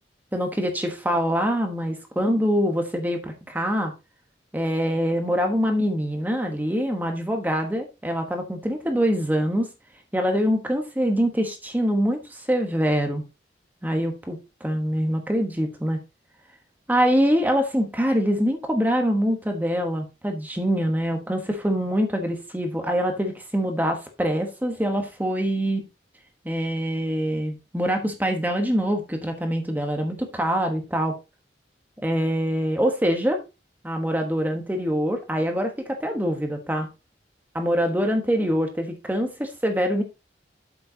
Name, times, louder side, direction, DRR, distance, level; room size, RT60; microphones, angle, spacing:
voice 1, 0.3-3.9 4.5-9.7 10.1-13.2 13.8-16.0 16.9-25.8 26.4-31.2 32.0-33.4 33.8-36.9 37.5-40.0, equal, 10° right, 1.2 m, -24 dB
8.0 x 7.6 x 2.8 m
head